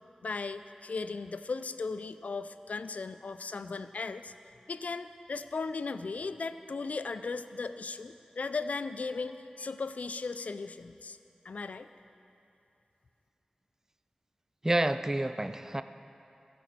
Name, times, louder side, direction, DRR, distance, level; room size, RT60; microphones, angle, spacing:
voice 1, 0.2-4.3 4.7-11.2 11.4-11.9, left 4 dB, 75° left, 11 dB, 0.4 m, -37 dB
voice 2, 14.6-15.8, right 1 dB, 20° right, 11 dB, 0.4 m, -29 dB
14.5 x 5.2 x 6.1 m, 2.7 s
wide cardioid pair, 50°, 2 cm